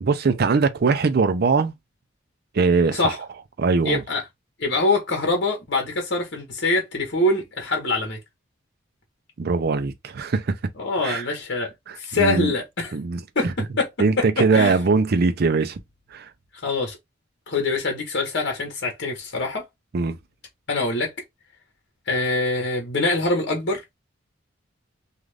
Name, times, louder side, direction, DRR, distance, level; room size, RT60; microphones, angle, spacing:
voice 1, 0.0-1.7 2.5-3.1 3.6-4.0 9.4-10.6 11.0-11.2 11.9-12.5 12.9-13.5 14.0-15.8 16.1-16.3 19.9-20.2, right 4 dB, 50° right, 0.5 m, -21 dB
voice 2, 3.8-4.2 4.6-8.2 10.8-11.7 12.0-12.9 13.3-13.5 13.8-13.9 14.5-14.8 16.6-17.0 17.5-19.6 20.7-21.1 22.1-23.8, left 2 dB, 60° left, 1.1 m, -24 dB
2.5 x 2.4 x 3.2 m
head